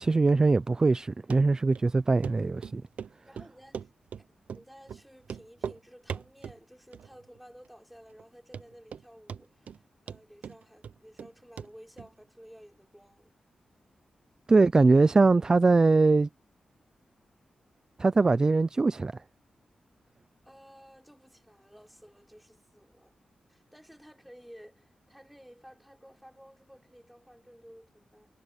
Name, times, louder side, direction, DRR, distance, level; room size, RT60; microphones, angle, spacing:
voice 1, 0.0-2.8 14.5-16.3 18.0-19.1, right 3 dB, 30° right, 0.4 m, -22 dB
Run, 1.3-1.4 1.8-1.9 2.2-2.4 2.6-3.1 3.4-4.2 4.5-4.6 4.9-5.0 5.3-5.8 6.1-6.6 6.9-7.4 7.7-7.8 8.2-8.3 8.5-9.0 9.3-9.8 10.1-11.3 11.6-11.7 12.0-12.1, right 7 dB, 85° right, 0.7 m, -39 dB
voice 2, 3.2-3.9 4.2-4.3 4.5-13.3 20.4-23.1 23.5-28.3, equal, ahead, 5.9 m, -54 dB
wide cardioid pair, 105°, 2 cm